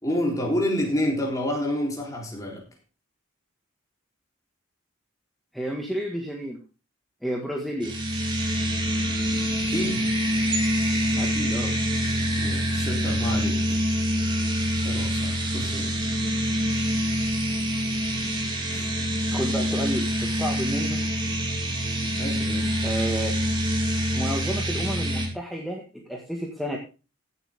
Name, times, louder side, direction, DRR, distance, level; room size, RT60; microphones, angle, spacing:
voice 1, 0.0-2.6 9.7-10.1 12.4-13.8 14.8-15.9 18.7-18.9 22.2-22.7, left 1 dB, 15° left, -1 dB, 3.8 m, -29 dB
voice 2, 5.5-6.6 7.2-7.9 11.1-11.7 19.3-21.0 22.8-23.4 24.1-26.8, equal, ahead, -1 dB, 1.7 m, -31 dB
sound 1, 7.8-25.3, equal, 25° right, 2.7 m, -25 dB
15.5 x 8.3 x 3.6 m, 0.32 s
head